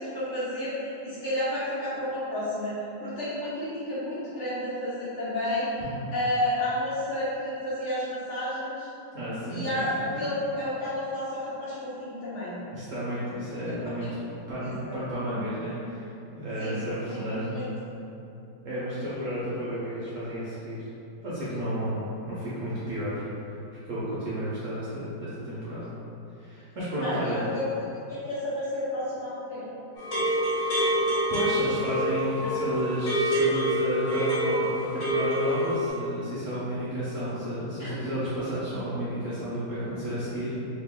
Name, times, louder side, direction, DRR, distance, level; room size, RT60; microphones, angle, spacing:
voice 1, 0.0-2.7 3.0-5.7 6.1-8.9 9.5-12.5 14.0-14.1 14.6-15.0 16.6-16.8 17.1-17.2 17.5-17.7 27.0-27.6 28.1-29.6 32.4-32.6 37.8-38.0, left 1 dB, 50° left, -10 dB, 1.0 m, -31 dB
voice 2, 5.8-6.1 9.1-10.1 12.7-14.1 14.5-16.1 16.4-17.6 18.6-20.9 21.2-23.5 23.9-25.9 26.4-27.4 30.5-40.7, equal, 60° right, -10 dB, 0.8 m, -32 dB
sound 1, 30.0-35.9, equal, 75° left, 1.9 m, -26 dB
3.0 x 3.0 x 3.5 m, 2.8 s
omnidirectional pair, 2.0 m